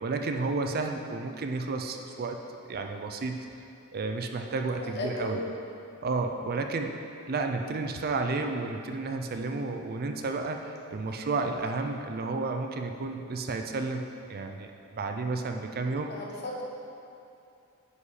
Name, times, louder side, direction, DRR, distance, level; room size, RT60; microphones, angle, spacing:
voice 1, 0.0-2.4 2.7-3.5 3.9-5.4 6.0-6.9 7.3-16.1, right 3 dB, 45° right, 5 dB, 0.5 m, -32 dB
voice 2, 4.8-5.4 6.5-6.6 11.0-11.2 16.1-16.6, left 1 dB, 50° left, -2 dB, 1.2 m, -36 dB
9.9 x 5.1 x 4.1 m, 2.7 s
head